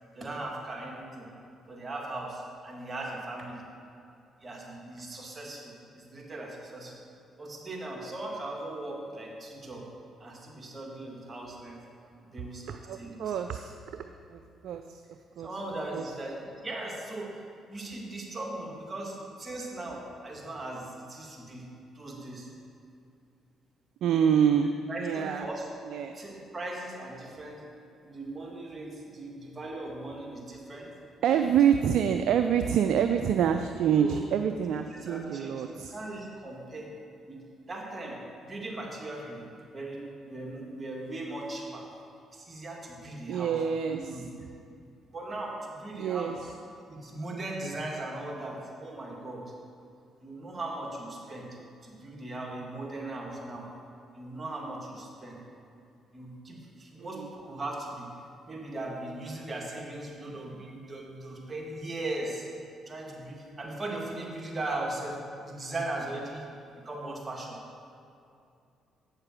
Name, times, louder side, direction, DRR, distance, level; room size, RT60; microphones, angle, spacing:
voice 1, 0.2-1.3 1.7-3.6 4.4-6.9 7.4-9.9 10.2-11.8 12.2-13.3 15.4-17.4 17.7-21.7 21.9-22.5 24.9-25.7 26.1-27.6 28.0-30.9 34.0-34.2 34.9-35.6 35.9-36.9 37.3-39.4 39.7-41.8 42.3-43.6 43.9-44.2 45.1-46.5 46.9-49.4 50.2-51.5 51.8-53.7 54.1-55.4 56.1-58.1 58.5-62.5 62.9-66.4 66.8-67.6, right 2 dB, 35° right, -1 dB, 2.2 m, -38 dB
voice 2, 12.7-15.0 15.4-15.5 15.9-16.0 24.0-24.7 25.0-25.5 25.8-26.2 31.2-35.9 43.3-44.2 46.0-46.4 57.0-57.3, right 8 dB, 70° right, 7 dB, 0.4 m, -27 dB
8.6 x 6.7 x 6.0 m, 2.6 s
hypercardioid pair, 55°, 0 cm